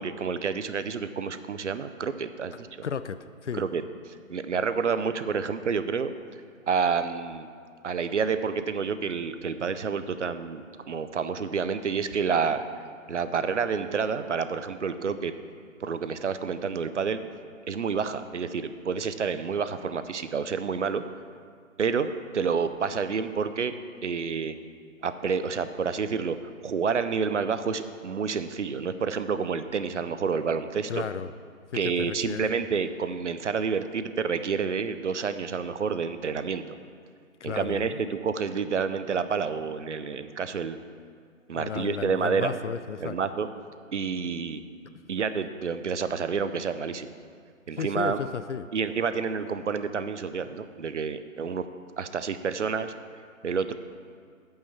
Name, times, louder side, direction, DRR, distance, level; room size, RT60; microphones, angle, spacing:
voice 1, 0.0-2.7 3.5-3.8 4.3-6.1 6.7-7.5 7.8-12.6 13.1-15.3 15.8-17.2 17.7-21.0 21.8-23.7 24.0-24.6 25.0-26.4 26.6-31.1 31.7-36.6 37.4-40.8 41.5-42.6 43.0-43.5 43.9-44.6 45.1-47.1 47.7-48.2 48.7-51.7 52.0-52.9 53.4-53.7, right 6 dB, 60° right, 11 dB, 0.6 m, -29 dB
voice 2, 2.8-3.7 30.9-31.3 31.8-32.6 37.4-38.1 41.6-43.2 47.7-48.7, left 6 dB, 60° left, 12 dB, 0.5 m, -34 dB
8.7 x 5.6 x 7.1 m, 2.1 s
figure-of-eight pair, 155°, 41 cm